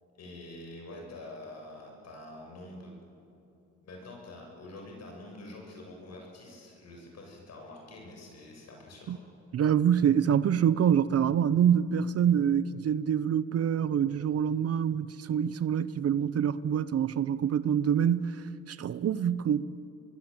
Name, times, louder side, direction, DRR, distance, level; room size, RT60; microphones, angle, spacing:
voice 1, 0.1-2.9 3.8-9.1, left 2 dB, 60° left, 7.8 m, -46 dB
voice 2, 9.5-18.3 18.7-19.7, right 8 dB, 50° right, 0.8 m, -26 dB
26.0 x 21.5 x 9.0 m
cardioid pair, 90°, 30 cm